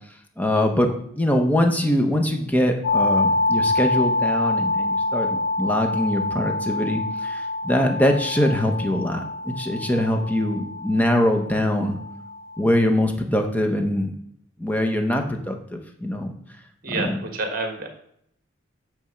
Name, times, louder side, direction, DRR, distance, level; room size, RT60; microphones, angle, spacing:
voice 1, 0.4-12.0 12.6-14.1 14.6-16.4 16.9-17.2, left 1 dB, 10° left, 4 dB, 0.9 m, -23 dB
sound 1, 2.8-12.6, left 2 dB, 75° left, 0.6 m, -26 dB
voice 2, 16.8-17.9, right 3 dB, 45° right, 3 dB, 1.5 m, -28 dB
8.7 x 3.5 x 6.4 m, 0.71 s
head